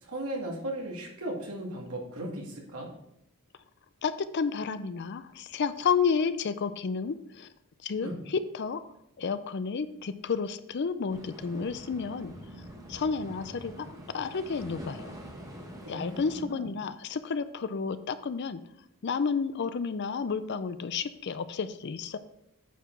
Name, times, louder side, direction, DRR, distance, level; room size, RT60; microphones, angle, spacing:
voice 1, 0.0-2.9 8.0-8.2 15.8-16.7, right 1 dB, 75° right, -1 dB, 2.1 m, -37 dB
voice 2, 4.0-7.5 7.8-8.8 9.2-12.3 12.9-15.1 15.9-18.6 19.0-22.2, left 5 dB, 50° left, 13 dB, 0.4 m, -31 dB
sound 1, 11.1-16.4, equal, 15° right, 1.1 m, -45 dB
9.1 x 4.7 x 4.5 m, 0.77 s
head